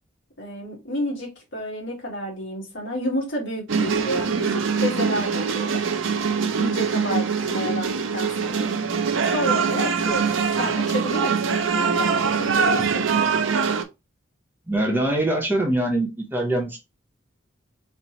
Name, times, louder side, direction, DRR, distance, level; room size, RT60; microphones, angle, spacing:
voice 1, 0.4-5.8 6.6-8.7 9.3-13.0, left 1 dB, 65° left, 1.7 m, -30 dB
sound 1, 3.7-13.8, right 5 dB, 75° right, 0.6 m, -23 dB
voice 2, 14.7-16.8, right 1 dB, 10° right, 0.8 m, -23 dB
4.1 x 3.0 x 3.0 m
head